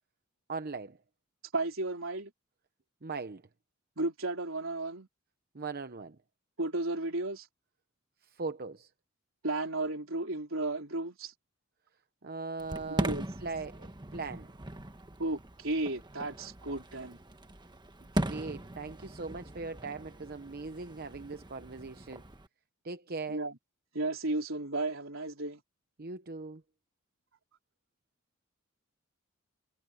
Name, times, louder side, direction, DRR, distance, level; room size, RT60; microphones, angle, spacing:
voice 1, 0.5-1.0 3.0-3.4 5.5-6.2 8.3-8.9 12.2-13.1 13.4-14.5 18.1-22.2 22.8-23.4 26.0-26.6, right 4 dB, 50° right, 0.9 m, -39 dB
voice 2, 1.5-2.3 4.0-5.1 6.6-7.5 9.4-11.3 12.9-13.3 15.2-17.2 23.3-23.6 23.9-25.6, right 2 dB, 70° right, 4.2 m, -34 dB
Fireworks, 12.6-22.5, right 1 dB, 20° right, 1.3 m, -39 dB
head